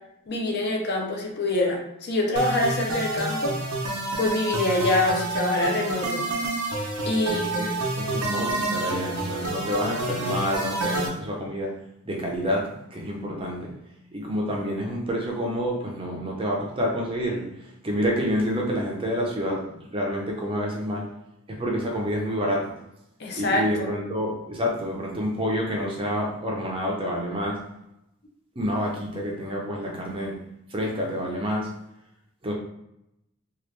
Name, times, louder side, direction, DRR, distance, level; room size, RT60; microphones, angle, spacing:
voice 1, 0.3-3.5 4.2-6.2 7.0-7.5 23.2-23.9, left 2 dB, 50° left, 0 dB, 0.6 m, -25 dB
sound 1, 2.4-11.1, right 2 dB, 85° right, 0.7 m, -29 dB
voice 2, 7.3-11.7 12.1-13.7 14.1-19.6 19.9-21.1 21.5-22.7 23.4-27.6 28.6-30.4 30.7-31.7 32.4-32.5, equal, 25° right, -1 dB, 0.5 m, -28 dB
2.9 x 2.4 x 3.2 m, 0.83 s
head